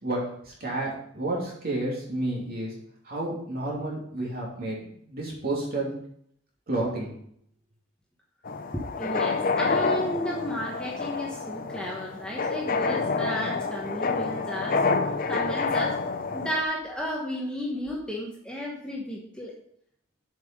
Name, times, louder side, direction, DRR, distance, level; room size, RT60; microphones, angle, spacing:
voice 1, 0.0-2.7 3.0-5.9 6.7-7.1, right 2 dB, 45° right, -4 dB, 2.9 m, -31 dB
sound 1, 8.5-16.6, left 4 dB, 40° left, 0.6 m, -28 dB
voice 2, 8.7-14.8 15.3-16.0 16.3-19.5, equal, 5° left, -2 dB, 1.1 m, -33 dB
7.5 x 5.6 x 5.2 m, 0.68 s
head